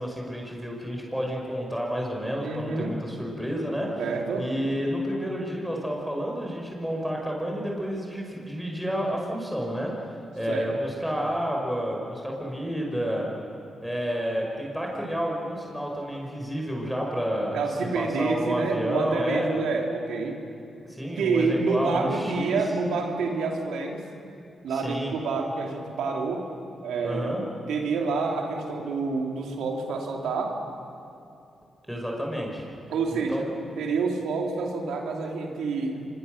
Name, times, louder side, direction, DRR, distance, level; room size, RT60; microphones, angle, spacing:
voice 1, 0.0-4.0 4.4-9.9 10.4-13.3 13.8-19.5 20.9-22.6 24.7-25.1 27.0-27.4 31.9-32.7 33.1-33.4, equal, 5° right, -1 dB, 5.5 m, -30 dB
voice 2, 2.4-3.0 4.0-4.5 10.5-10.7 17.5-20.4 21.2-24.0 24.6-26.5 26.8-30.6 32.9-33.5 33.8-36.1, right 4 dB, 80° right, 1 dB, 2.8 m, -28 dB
26.0 x 22.5 x 6.5 m, 2.6 s
supercardioid pair, 45°, 0 cm